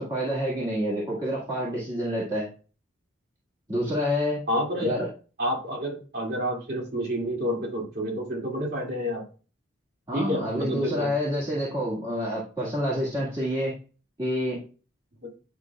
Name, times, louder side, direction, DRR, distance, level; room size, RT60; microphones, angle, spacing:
voice 1, 0.0-2.5 3.7-4.4 4.8-5.1 10.1-13.7 14.2-14.6, equal, 20° right, -6 dB, 1.8 m, -28 dB
voice 2, 4.5-5.1 5.4-9.2 10.1-11.1 15.2-15.3, equal, 50° right, -2 dB, 2.5 m, -29 dB
9.5 x 5.8 x 2.4 m, 0.36 s
head